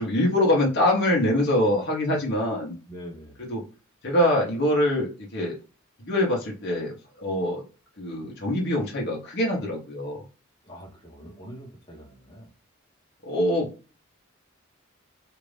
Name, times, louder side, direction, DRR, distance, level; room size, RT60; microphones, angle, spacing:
voice 1, 0.0-2.7 3.4-3.6 4.0-5.6 6.0-7.6 8.0-10.2 13.2-13.7, left 1 dB, 55° left, -2 dB, 1.1 m, -24 dB
voice 2, 2.9-3.5 10.6-12.5, equal, 25° left, -1 dB, 1.2 m, -43 dB
2.8 x 2.5 x 3.2 m, 0.34 s
head